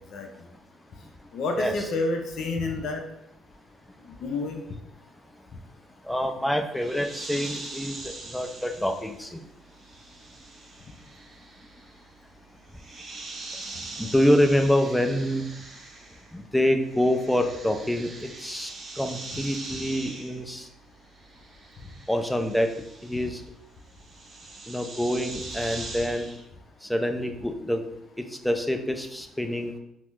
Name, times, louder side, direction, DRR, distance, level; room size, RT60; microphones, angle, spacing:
voice 1, 1.3-3.0 4.2-4.6, left 3 dB, 60° left, 4 dB, 0.5 m, -29 dB
voice 2, 6.0-9.4 14.0-15.4 16.3-20.7 22.1-22.7 23.0-23.4 24.7-26.3 26.8-27.8 28.4-29.7, equal, 5° left, 6 dB, 0.4 m, -26 dB
sound 1, 6.7-16.5 16.7-26.4, right 3 dB, 40° right, 0.7 m, -42 dB
4.2 x 2.0 x 2.4 m, 0.79 s
hypercardioid pair, 55°, 0 cm